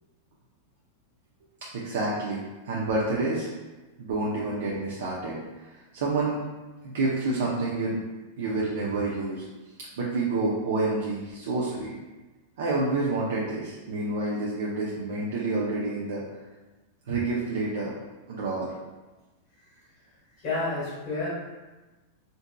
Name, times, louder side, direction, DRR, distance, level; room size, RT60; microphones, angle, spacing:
voice 1, 1.7-3.5 4.0-6.4 6.8-8.0 8.4-9.4 10.0-12.0 12.6-16.2 17.1-17.9 18.3-18.8, right 2 dB, 70° right, -5 dB, 0.5 m, -28 dB
voice 2, 20.4-21.3, left 3 dB, 30° left, -7 dB, 1.4 m, -29 dB
3.7 x 2.6 x 2.2 m, 1.2 s
supercardioid pair, 175°, 0 cm